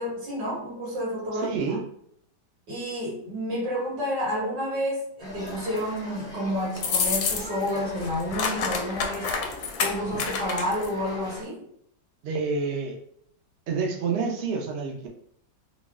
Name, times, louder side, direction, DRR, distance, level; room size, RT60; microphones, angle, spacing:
voice 1, 0.0-1.8 2.7-9.3 9.8-11.7, equal, 80° right, -5 dB, 2.3 m, -30 dB
voice 2, 1.3-1.8 12.2-13.0 13.7-15.1, right 4 dB, 60° right, 0 dB, 0.7 m, -28 dB
sound 1, 5.2-11.4, left 1 dB, 25° left, 0.6 m, -40 dB
sound 2, 6.8-7.7 8.0-10.9, left 5 dB, 70° left, 0.7 m, -28 dB
4.1 x 2.3 x 3.5 m, 0.67 s
omnidirectional pair, 1.9 m